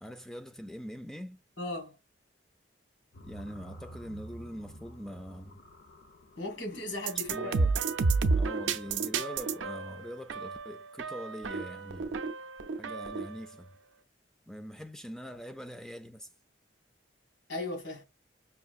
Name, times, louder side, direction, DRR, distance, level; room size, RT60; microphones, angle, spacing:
voice 1, 0.0-1.4 3.2-5.6 7.3-7.7 8.3-12.2 12.8-13.7 14.5-16.3, equal, 5° left, 0.3 m, -43 dB
voice 2, 1.6-2.0 6.4-7.5 17.5-18.0, left 2 dB, 90° left, 1.9 m, -37 dB
sound 1, 3.1-8.9, equal, 55° left, 0.5 m, -52 dB
sound 2, 7.0-13.4, right 4 dB, 75° right, 0.4 m, -31 dB
5.7 x 2.5 x 2.5 m
head